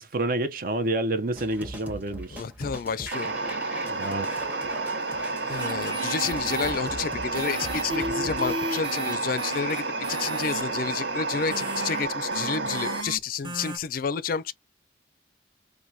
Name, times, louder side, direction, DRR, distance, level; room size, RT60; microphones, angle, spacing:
voice 1, 0.0-2.4 3.9-4.4, right 2 dB, 50° right, 0.6 m, -28 dB
sound 1, 1.4-8.5, equal, 10° right, 0.9 m, -41 dB
voice 2, 2.3-3.3 5.5-14.5, left 6 dB, 50° left, 0.4 m, -30 dB
sound 2, 3.1-13.0, right 3 dB, 70° right, 1.4 m, -30 dB
sound 3, 5.6-6.7 7.3-13.2 13.4-13.8, right 1 dB, 25° right, 1.1 m, -35 dB
4.6 x 2.2 x 2.6 m
head